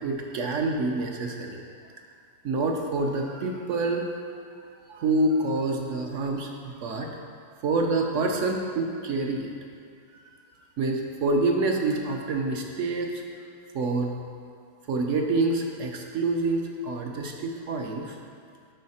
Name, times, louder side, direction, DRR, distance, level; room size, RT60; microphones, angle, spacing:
voice 1, 0.0-1.6 2.4-4.1 4.9-7.1 7.6-9.5 10.8-13.2 13.7-14.1 14.9-18.1, right 2 dB, 65° right, 2 dB, 0.8 m, -27 dB
12.0 x 4.2 x 4.2 m, 2.2 s
omnidirectional pair, 1.9 m